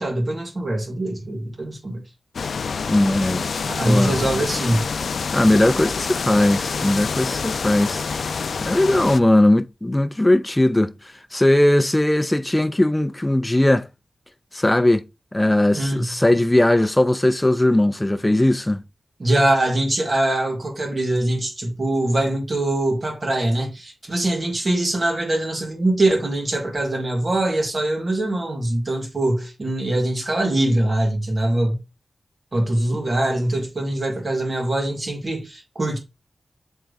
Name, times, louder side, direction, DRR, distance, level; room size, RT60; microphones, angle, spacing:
voice 1, 0.0-2.0 3.6-4.8 15.7-16.1 19.2-31.8 32.5-36.0, right 1 dB, 40° right, 2.4 m, -23 dB
sound 1, 2.3-9.2, left 5 dB, 85° left, 0.4 m, -27 dB
voice 2, 2.9-3.5 3.9-4.4 5.3-10.9 11.3-13.9 14.5-15.0 15.3-18.8, left 1 dB, 10° left, 0.5 m, -19 dB
7.3 x 3.8 x 3.4 m
wide cardioid pair, 125°, 0 cm